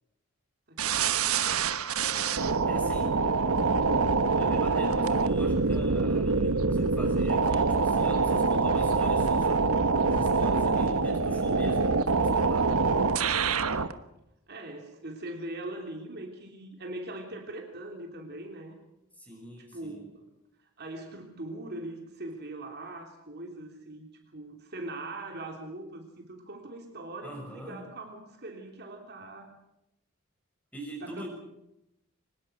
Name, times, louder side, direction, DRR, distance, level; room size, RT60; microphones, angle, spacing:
voice 1, 0.7-1.2 12.9-13.4 14.5-18.8 19.3-19.5 19.7-20.2 20.6-29.5 31.0-31.3, right 2 dB, 50° right, 2 dB, 3.3 m, -41 dB
sound 1, 0.8-13.9, right 4 dB, 90° right, 1.2 m, -25 dB
voice 2, 2.0-3.2 4.4-13.1 19.2-20.1 27.2-27.9 30.7-31.3, equal, 5° left, 2 dB, 6.1 m, -43 dB
23.5 x 20.5 x 6.4 m, 0.86 s
head